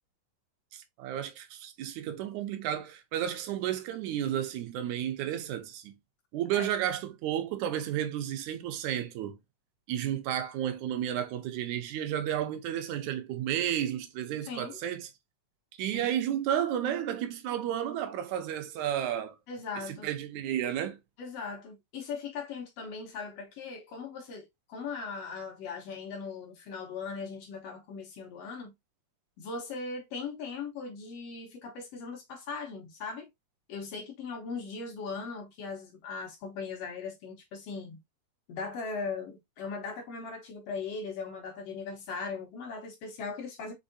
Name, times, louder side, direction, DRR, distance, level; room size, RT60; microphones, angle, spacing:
voice 1, 0.7-5.9 6.3-9.4 9.9-15.1 15.8-19.4 19.9-21.0, right 10 dB, 75° right, 1.8 m, -32 dB
voice 2, 14.4-14.8 15.9-16.1 19.5-20.1 21.2-28.7 29.4-33.3 33.7-38.0 38.5-43.7, left 4 dB, 70° left, 1.5 m, -39 dB
5.4 x 3.5 x 2.6 m
omnidirectional pair, 4.0 m